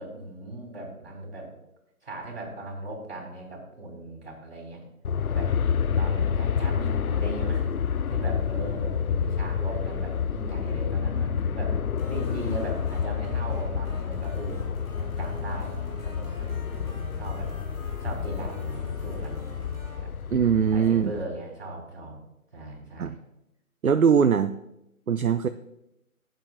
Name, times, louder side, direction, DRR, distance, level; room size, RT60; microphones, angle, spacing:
voice 1, 0.0-1.5 2.0-4.8 5.2-5.5 6.0-7.8 8.1-11.8 12.1-14.6 15.0-17.5 18.0-19.5 20.0-20.1 20.7-22.2 22.5-23.2, right 1 dB, 45° right, -2 dB, 3.6 m, -38 dB
Aircraft, 5.0-21.2, left 7 dB, 75° left, 0.5 m, -29 dB
sound 1, 12.0-20.0, equal, 20° left, 3.1 m, -45 dB
voice 2, 20.3-21.1 23.0-23.2 23.8-24.5 25.1-25.5, right 7 dB, 70° right, 11 dB, 0.6 m, -21 dB
17.5 x 7.6 x 2.4 m, 0.85 s
figure-of-eight pair, 155°, 44 cm